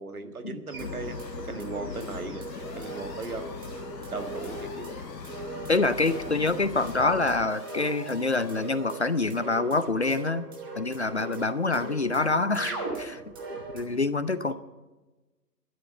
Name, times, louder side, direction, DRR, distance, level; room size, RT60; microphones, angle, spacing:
voice 1, 0.0-2.5 2.8-3.5 4.1-5.0 13.9-14.0 14.5-14.6, right 3 dB, 60° right, 7 dB, 1.7 m, -37 dB
sound 1, 0.7-13.8, right 2 dB, 15° right, 1.4 m, -40 dB
sound 2, 0.8-7.5, left 5 dB, 85° left, 0.9 m, -40 dB
sound 3, 2.5-9.2, left 2 dB, 10° left, 1.5 m, -48 dB
voice 2, 5.7-10.5 10.7-13.2 13.7-14.5, left 3 dB, 45° left, 14 dB, 0.6 m, -26 dB
12.0 x 10.0 x 8.4 m, 1.1 s
figure-of-eight pair, 150°, 49 cm